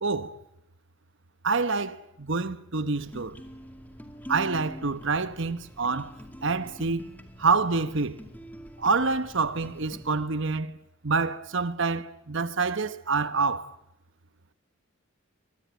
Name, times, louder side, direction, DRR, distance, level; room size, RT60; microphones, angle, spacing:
voice 1, 0.0-0.4 1.4-3.4 4.3-6.1 6.4-7.1 7.4-8.2 8.8-10.8 11.0-13.7, right 4 dB, 60° right, 1.1 m, -27 dB
sound 1, 3.0-10.2, equal, 10° left, 2.3 m, -45 dB
24.5 x 23.0 x 9.4 m
head